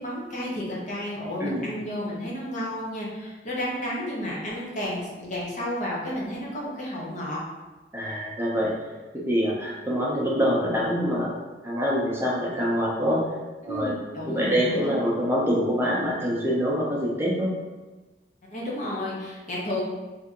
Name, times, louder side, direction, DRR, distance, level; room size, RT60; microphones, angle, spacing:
voice 1, 0.0-7.4 13.6-14.9 18.5-19.8, left 1 dB, 45° left, -5 dB, 0.9 m, -32 dB
voice 2, 7.9-8.7 9.3-11.3 11.6-13.2 13.6-13.9 14.3-17.5, equal, 15° right, -5 dB, 0.6 m, -25 dB
2.8 x 2.7 x 3.6 m, 1.2 s
head